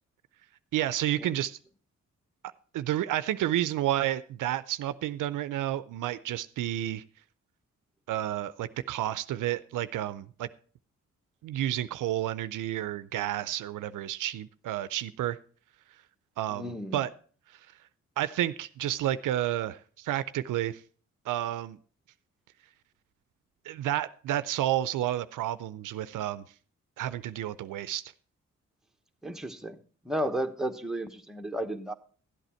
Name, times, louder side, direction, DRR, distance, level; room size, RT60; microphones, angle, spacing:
voice 1, 0.7-1.6 2.7-7.0 8.1-10.5 11.4-15.4 16.4-17.1 18.2-20.8 21.3-21.8 23.7-26.4 27.0-28.0, right 13 dB, 80° right, 15 dB, 0.5 m, -30 dB
voice 2, 16.5-17.0 29.2-29.8 30.0-31.9, right 1 dB, ahead, 5 dB, 1.0 m, -33 dB
12.0 x 8.2 x 4.3 m, 0.42 s
cardioid pair, 65°, 31 cm